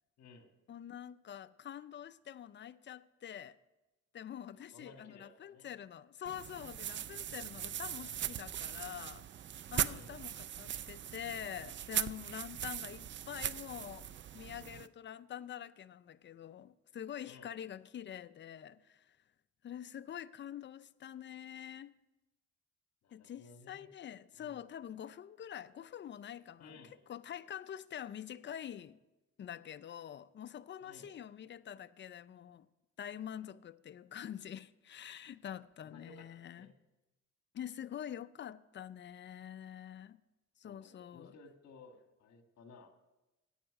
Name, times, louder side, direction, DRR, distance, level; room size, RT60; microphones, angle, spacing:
voice 1, 0.2-0.5 4.5-5.7 9.8-10.1 17.3-17.6 23.0-23.9 24.3-24.7 26.6-27.0 30.8-31.1 35.8-36.7 40.6-42.9, left 3 dB, 60° left, 1.6 m, -57 dB
voice 2, 0.7-3.6 4.1-9.3 9.7-14.1 14.3-19.2 19.6-21.9 23.1-26.8 27.1-29.0 29.4-32.7 33.0-36.7 37.5-40.2 40.6-41.3, left 10 dB, 40° left, 0.5 m, -46 dB
sound 1, 6.3-14.9, right 10 dB, 40° right, 0.4 m, -40 dB
10.5 x 8.8 x 6.4 m
cardioid pair, 90°, 30 cm